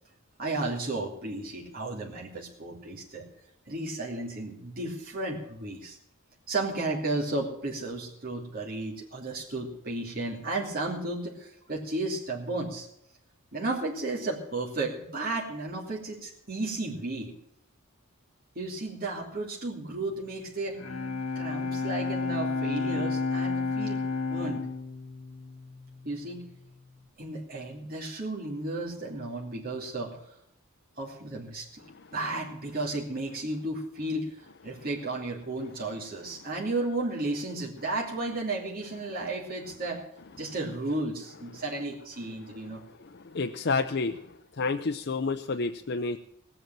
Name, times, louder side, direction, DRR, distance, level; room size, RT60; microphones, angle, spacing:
voice 1, 0.4-3.3 3.7-6.0 6.5-12.9 13.5-17.3 18.5-20.8 21.3-24.7 26.0-26.5 27.2-30.3 31.0-31.8 32.1-34.3 34.6-40.0 40.3-42.8, right 2 dB, 45° right, -3 dB, 2.7 m, -33 dB
Bowed string instrument, 20.5-26.3, left 4 dB, 85° left, 1.9 m, -31 dB
voice 2, 43.0-44.2 44.6-46.2, left 4 dB, 50° left, 6 dB, 0.6 m, -29 dB
18.0 x 8.1 x 7.5 m, 0.75 s
head